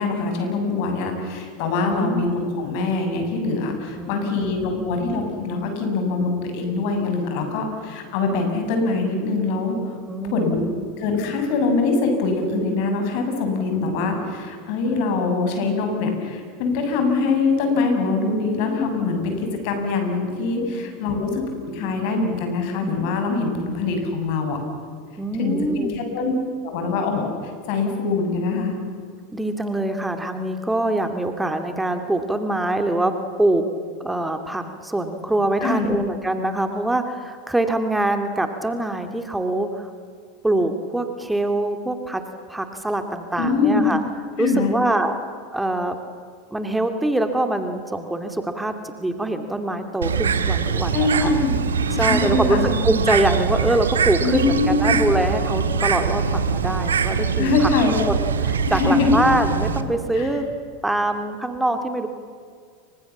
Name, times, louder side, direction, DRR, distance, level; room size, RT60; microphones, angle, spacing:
voice 1, 0.0-9.9 10.3-10.7 11.0-24.6 25.4-26.3 26.6-28.7 35.6-35.9 43.4-43.9 44.4-44.8 50.9-51.5 51.9-52.7 54.2-54.9 57.4-57.9 58.7-59.2 60.1-60.4, left 3 dB, 60° left, 4 dB, 7.3 m, -23 dB
voice 2, 1.8-2.3 4.0-4.9 10.1-10.7 20.7-20.8 25.2-26.0 29.3-33.6 34.0-39.9 40.4-42.2 42.5-44.0 44.4-45.1 45.5-46.0 46.5-51.3 51.9-57.7 58.1-60.4 60.8-62.1, right 1 dB, 5° right, 6 dB, 2.4 m, -24 dB
Bird, 50.0-59.8, right 6 dB, 85° right, 1.8 m, -23 dB
29.5 x 24.5 x 7.3 m, 2.1 s
hypercardioid pair, 85°, 0 cm